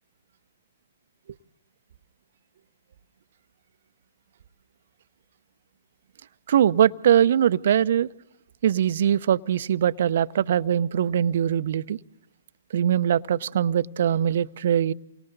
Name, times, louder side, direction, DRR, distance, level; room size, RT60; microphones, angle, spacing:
voice 1, 6.5-8.1 8.6-12.0 12.7-14.9, right 9 dB, 60° right, 0.8 m, -22 dB
28.5 x 25.0 x 4.1 m
figure-of-eight pair, 120°, 0 cm